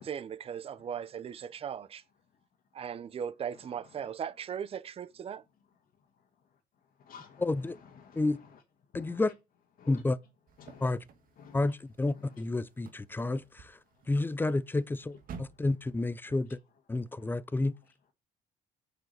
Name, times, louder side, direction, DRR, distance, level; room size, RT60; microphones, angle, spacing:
voice 1, 0.0-2.0 2.7-5.4, right 8 dB, 35° right, 0.6 m, -38 dB
voice 2, 2.1-3.2 3.5-4.1 5.2-9.3 9.8-10.0 10.6-10.9 11.3-11.8 12.1-12.5 13.1-13.5 13.9-14.1 15.3-15.7 16.2-16.6 16.9-18.1, left 6 dB, 55° left, 1.6 m, -58 dB
voice 3, 7.4-7.8 8.2-8.4 8.9-9.3 9.9-10.2 10.8-11.0 11.5-13.7 14.1-15.1 15.6-16.5 16.9-17.7, left 2 dB, 10° left, 0.5 m, -30 dB
sound 1, 10.5-16.4, right 6 dB, 55° right, 1.6 m, -53 dB
9.1 x 5.0 x 6.5 m
cardioid pair, 110°, 17 cm